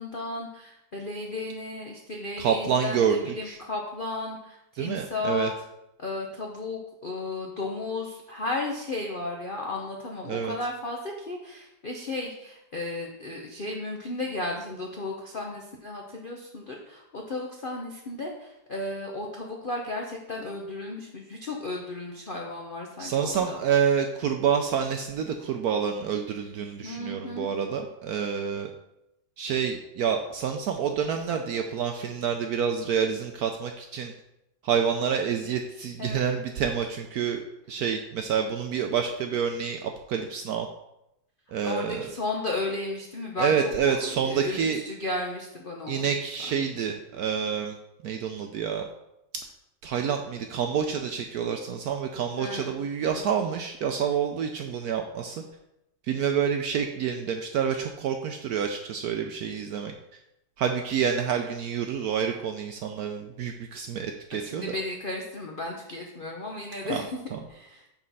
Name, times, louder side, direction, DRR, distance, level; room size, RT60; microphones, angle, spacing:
voice 1, 0.0-5.5 6.0-23.6 26.8-27.5 36.0-36.3 41.6-46.1 46.5-46.6 52.3-53.2 64.3-67.8, left 2 dB, 60° left, 0 dB, 0.5 m, -34 dB
voice 2, 2.4-3.6 4.8-5.5 10.3-10.5 23.0-28.7 29.4-34.1 34.6-37.4 37.7-40.7 41.5-42.1 43.4-44.8 45.9-47.8 48.0-48.8 49.8-55.4 56.1-59.9 60.6-64.7 66.9-67.0, right 7 dB, 75° right, 4 dB, 0.9 m, -28 dB
6.2 x 4.3 x 5.4 m, 0.86 s
omnidirectional pair, 2.0 m